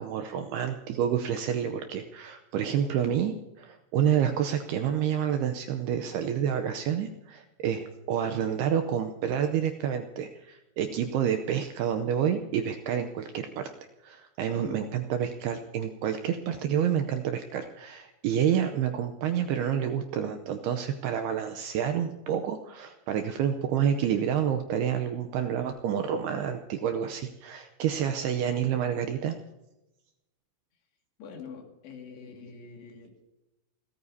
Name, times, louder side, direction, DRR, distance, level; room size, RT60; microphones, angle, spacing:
voice 1, 0.0-13.7 14.0-29.4, right 9 dB, 90° right, 7 dB, 2.3 m, -29 dB
voice 2, 14.5-14.9 31.2-33.2, left 4 dB, 65° left, 2 dB, 4.2 m, -44 dB
30.0 x 14.0 x 2.8 m, 0.98 s
omnidirectional pair, 5.4 m